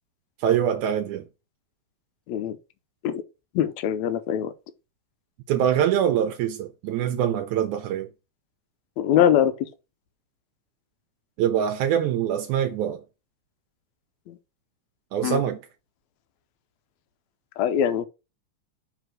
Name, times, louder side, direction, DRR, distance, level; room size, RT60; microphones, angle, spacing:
voice 1, 0.4-1.3 5.5-8.1 11.4-13.0 15.1-15.6, right 9 dB, 80° right, 2.1 m, -24 dB
voice 2, 3.6-4.5 9.0-9.5 14.3-14.4 15.2-15.4 17.6-18.1, left 10 dB, 75° left, 1.9 m, -22 dB
6.7 x 4.1 x 6.1 m
omnidirectional pair, 3.5 m